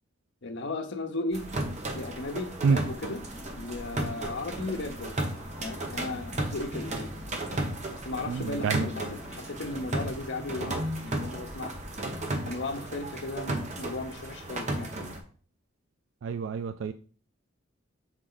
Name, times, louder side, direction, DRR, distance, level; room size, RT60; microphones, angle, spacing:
voice 1, 0.4-1.5 1.9-3.2 3.6-5.2 5.6-7.2 7.9-11.7 12.4-15.0, left 2 dB, 65° left, 6 dB, 0.9 m, -36 dB
sound 1, 1.3-15.2, right 1 dB, 35° right, 1.1 m, -34 dB
sound 2, 3.0-10.1, left 2 dB, 25° left, 2.0 m, -48 dB
voice 2, 8.3-8.9 16.2-16.9, right 5 dB, 70° right, 11 dB, 0.3 m, -27 dB
6.4 x 4.2 x 3.9 m, 0.42 s
head